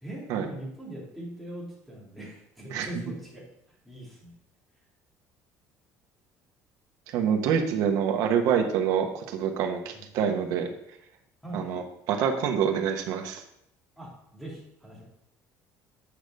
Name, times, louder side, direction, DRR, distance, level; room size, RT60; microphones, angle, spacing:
voice 1, 0.0-3.4 3.8-4.4 9.9-10.0 11.4-11.7 14.0-15.0, right 1 dB, ahead, -6 dB, 2.6 m, -41 dB
voice 2, 7.1-10.7 11.5-13.4, right 7 dB, 65° right, 4 dB, 1.2 m, -26 dB
8.8 x 5.0 x 5.4 m, 0.78 s
cardioid pair, 180°, 6 cm